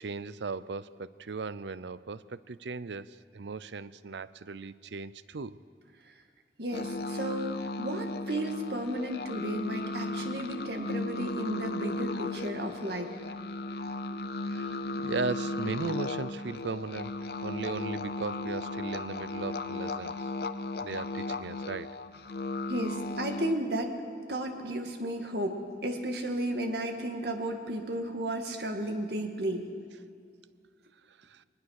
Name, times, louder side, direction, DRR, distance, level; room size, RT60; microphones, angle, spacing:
voice 1, 0.0-5.6 14.4-17.1 17.4-20.3 20.8-22.0 31.1-31.4, right 4 dB, 85° right, 17 dB, 0.6 m, -37 dB
voice 2, 6.6-13.1 22.7-23.9 24.3-25.6 25.8-29.7, right 1 dB, 65° right, 4 dB, 2.0 m, -33 dB
sound 1, 6.7-23.5, left 2 dB, 60° left, 0.7 m, -36 dB
22.0 x 20.0 x 6.6 m, 2.3 s
head